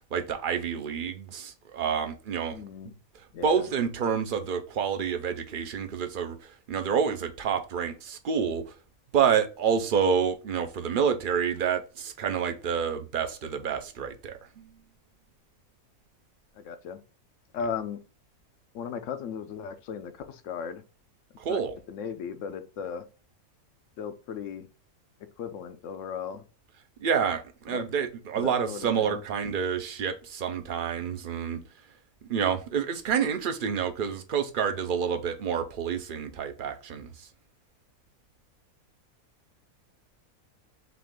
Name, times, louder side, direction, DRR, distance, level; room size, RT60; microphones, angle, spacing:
voice 1, 0.1-2.6 3.4-8.6 9.1-14.7 21.4-21.8 27.0-31.6 32.2-37.3, right 7 dB, 50° right, 0.7 m, -28 dB
voice 2, 2.5-2.9 3.3-3.7 16.6-17.0 17.5-18.0 18.7-20.8 21.5-21.6 21.9-23.0 24.0-24.6 25.4-26.4 27.7-27.8 28.4-29.2, left 7 dB, 65° left, 0.9 m, -36 dB
5.9 x 2.5 x 3.6 m
omnidirectional pair, 1.5 m